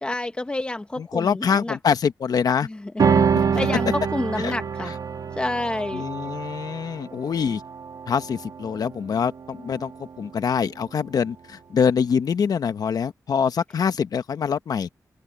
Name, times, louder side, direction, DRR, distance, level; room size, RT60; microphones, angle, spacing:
voice 1, 0.0-1.8 2.6-4.9 5.4-6.0, left 2 dB, 15° left, 1.1 m, -29 dB
voice 2, 1.0-2.7 4.4-4.5 5.9-7.6 8.1-9.9 10.2-14.9, left 6 dB, 80° left, 1.1 m, -24 dB
sound 1, 3.0-9.7, right 6 dB, 75° right, 1.6 m, -26 dB
open air
wide cardioid pair, 135°, 6 cm